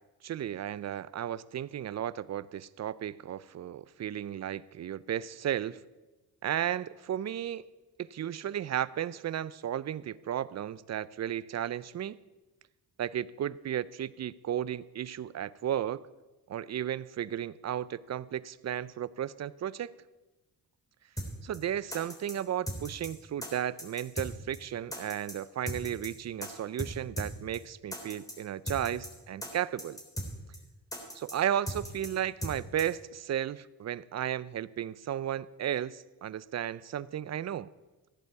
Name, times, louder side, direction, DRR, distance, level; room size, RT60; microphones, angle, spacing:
voice 1, 0.2-5.8 6.4-7.6 8.0-12.2 13.0-16.0 16.5-19.9 21.4-30.0 31.1-37.7, right 10 dB, 45° right, 19 dB, 0.5 m, -34 dB
sound 1, 21.2-21.3 21.5-21.6 21.9-22.3 22.7-23.1 23.4-23.5 23.8-24.3 24.5-24.6 24.9-25.3 25.7-26.1 26.4-26.5 26.8-26.9 27.2-27.3 27.5-27.6 27.9-28.3 28.7-29.1 29.4-29.5 29.8-30.3 30.5-30.6 30.9-31.3 31.7-32.1 32.4-32.5 32.8-32.9, equal, 10° left, 3.1 m, -37 dB
14.5 x 11.0 x 4.7 m, 1.1 s
cardioid pair, 80°, 38 cm